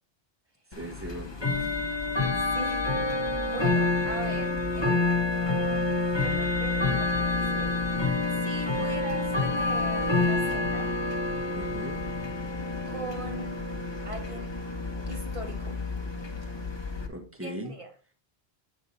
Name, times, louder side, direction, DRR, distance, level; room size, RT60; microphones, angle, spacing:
Bell / Tick-tock, 0.7-17.1, left 3 dB, 25° left, 1.2 m, -28 dB
voice 1, 0.8-1.7 8.8-9.0 11.5-12.0 17.1-17.7, right 1 dB, 10° right, 3 dB, 1.5 m, -39 dB
voice 2, 1.5-1.9 2.4-2.9 3.4-7.8 8.4-11.0 12.8-13.6 14.0-14.5 15.1-15.8 17.4-17.9, right 1 dB, 30° right, 3 dB, 1.6 m, -40 dB
8.9 x 4.9 x 4.1 m, 0.38 s
omnidirectional pair, 1.1 m